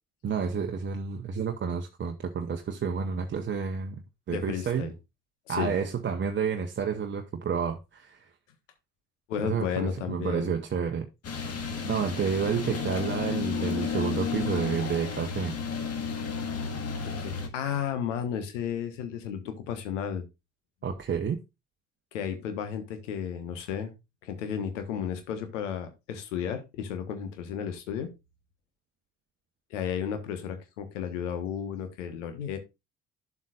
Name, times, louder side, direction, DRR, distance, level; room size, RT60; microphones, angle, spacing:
voice 1, 0.2-3.9 4.3-4.9 5.5-8.3 9.4-11.1 11.8-15.6 20.8-21.4, right 6 dB, 30° right, 1.0 m, -30 dB
voice 2, 4.3-4.9 5.5-5.7 9.3-10.5 17.0-20.3 22.1-23.9 24.2-28.1 29.7-32.6, left 8 dB, 70° left, 1.4 m, -33 dB
sound 1, 11.2-17.5, left 6 dB, 40° left, 1.8 m, -32 dB
11.0 x 7.4 x 2.5 m
figure-of-eight pair, 55°, 38 cm